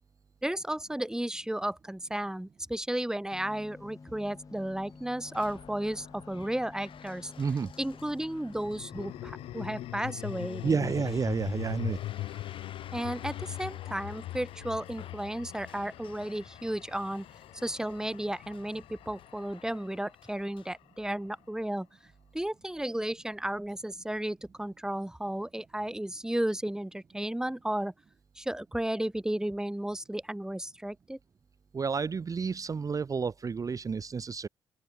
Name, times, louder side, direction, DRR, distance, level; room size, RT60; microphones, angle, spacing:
voice 1, 0.4-7.3 7.8-10.9 12.9-17.2 17.6-21.9 22.3-27.9 28.4-31.2, right 1 dB, 5° right, 1.4 m, -33 dB
sound 1, 3.3-9.9, left 4 dB, 35° left, 2.5 m, -51 dB
sound 2, 4.0-21.5, left 8 dB, 60° left, 1.9 m, -54 dB
sound 3, 4.5-6.8 8.4-20.7, left 16 dB, 85° left, 3.1 m, -42 dB
voice 2, 7.4-7.7 10.6-12.0 12.3-12.4 31.7-34.5, right 5 dB, 35° right, 0.6 m, -30 dB
open air
supercardioid pair, 65°, 10 cm